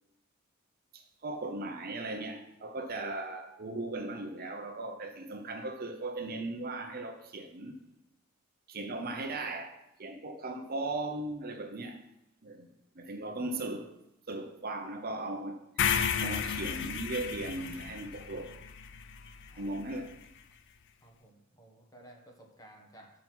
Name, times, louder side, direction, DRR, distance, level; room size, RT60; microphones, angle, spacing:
voice 1, 0.9-7.8 8.7-12.0 12.4-12.7 13.0-13.9 14.3-18.5 19.6-20.1, right 2 dB, 45° right, 0.7 m, -38 dB
voice 2, 13.3-13.8 19.5-20.2 21.0-23.1, right 1 dB, 15° left, 1.2 m, -56 dB
sound 1, 15.8-19.9, left 8 dB, 55° left, 0.4 m, -33 dB
6.2 x 5.7 x 6.1 m
head